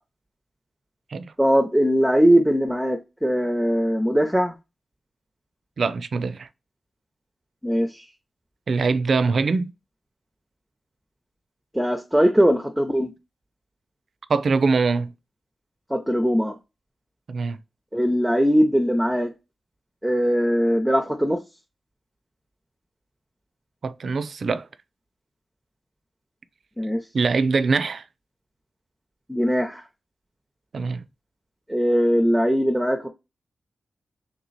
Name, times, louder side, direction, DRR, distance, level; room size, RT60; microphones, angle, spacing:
voice 1, 1.4-4.5 7.6-8.0 11.7-13.1 15.9-16.5 17.9-19.3 20.0-21.4 26.8-27.0 29.3-29.8 31.7-33.1, equal, 5° right, 0.6 m, -20 dB
voice 2, 5.8-6.5 8.7-9.7 14.3-15.1 17.3-17.6 23.8-24.7 27.1-28.0 30.7-31.0, right 4 dB, 70° right, 0.4 m, -23 dB
3.2 x 3.0 x 3.9 m
cardioid pair, 55°, 0 cm